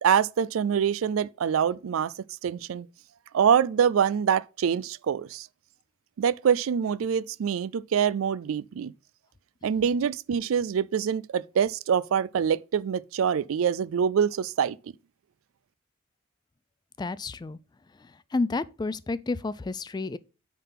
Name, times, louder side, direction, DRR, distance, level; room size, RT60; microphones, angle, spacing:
voice 1, 0.0-2.1 2.4-2.9 3.3-5.5 6.2-8.9 9.6-14.8, right 7 dB, 80° right, 0.4 m, -25 dB
voice 2, 17.0-17.6 18.3-20.2, left 3 dB, 20° left, 0.3 m, -30 dB
9.3 x 3.8 x 5.6 m
head